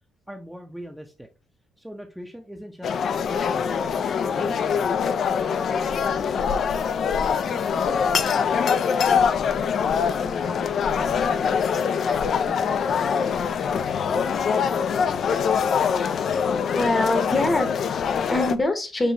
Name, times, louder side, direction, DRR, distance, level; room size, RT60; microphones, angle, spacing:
voice 1, 0.3-1.3 1.8-4.9 5.2-6.7 7.2-8.7 8.9-9.8 10.1-14.7 17.0-17.2 17.5-17.6, equal, ahead, 2 dB, 0.6 m, -41 dB
sound 1, 2.8-18.6, left 6 dB, 60° left, 0.3 m, -23 dB
voice 2, 16.7-19.1, left 2 dB, 25° left, 8 dB, 0.9 m, -24 dB
5.5 x 2.5 x 2.8 m, 0.29 s
cardioid pair, 90°, 0 cm